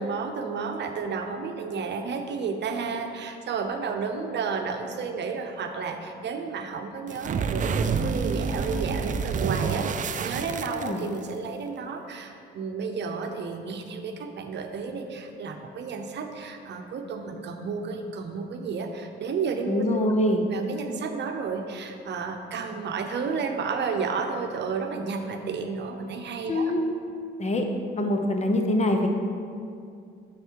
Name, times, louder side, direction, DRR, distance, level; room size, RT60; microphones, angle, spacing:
voice 1, 0.0-19.9 20.4-26.7, right 5 dB, 60° right, 5 dB, 0.8 m, -32 dB
sound 1, 7.1-11.3, right 5 dB, 40° right, 0.4 m, -28 dB
voice 2, 10.7-11.0 19.7-20.5 26.5-26.8 27.4-27.7 28.0-29.1, left 1 dB, 35° left, 4 dB, 0.9 m, -24 dB
7.2 x 6.6 x 4.6 m, 2.4 s
cardioid pair, 90°, 20 cm